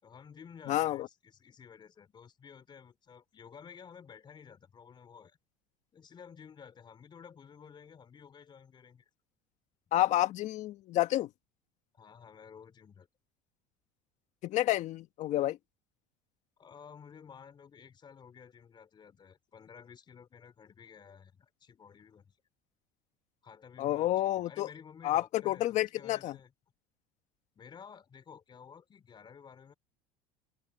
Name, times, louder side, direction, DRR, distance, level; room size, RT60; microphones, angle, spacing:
voice 1, 0.0-5.4 5.9-9.0 11.9-13.1 16.6-22.4 23.4-26.5 27.6-29.7, left 7 dB, 30° left, 4.1 m, -53 dB
voice 2, 0.7-1.1 9.9-11.3 14.4-15.6 23.8-24.7 25.0-26.4, left 14 dB, 55° left, 1.7 m, -29 dB
open air
supercardioid pair, 105°, 15 cm